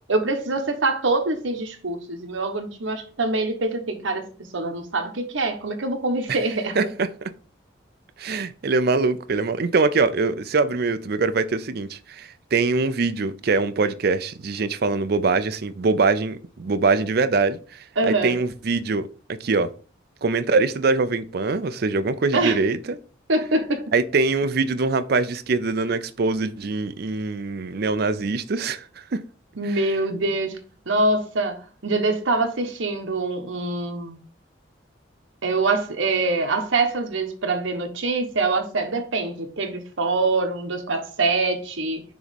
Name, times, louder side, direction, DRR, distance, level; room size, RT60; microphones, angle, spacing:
voice 1, 0.1-4.2 4.5-6.9 18.0-18.4 22.3-22.6 23.3-23.9 29.6-30.6 30.9-34.2 35.4-42.0, right 3 dB, 80° right, 1.1 m, -24 dB
voice 2, 6.8-7.1 8.2-19.7 20.2-23.0 23.9-28.9 29.1-29.2, right 3 dB, 55° right, 0.5 m, -23 dB
6.2 x 3.0 x 5.1 m
head